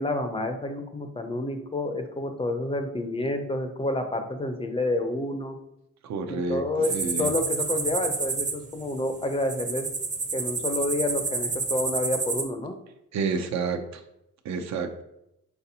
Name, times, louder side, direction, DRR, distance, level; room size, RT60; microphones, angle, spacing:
voice 1, 0.0-5.6 6.3-9.9 10.3-12.7, left 1 dB, 20° left, 7 dB, 0.5 m, -29 dB
voice 2, 6.0-6.6 6.9-7.3 13.1-14.0 14.4-15.0, right 4 dB, 65° right, 6 dB, 0.6 m, -29 dB
sound 1, 6.8-12.4, right 4 dB, 25° right, 0.6 m, -30 dB
4.2 x 3.8 x 2.7 m, 0.83 s
cardioid pair, 90°, 30 cm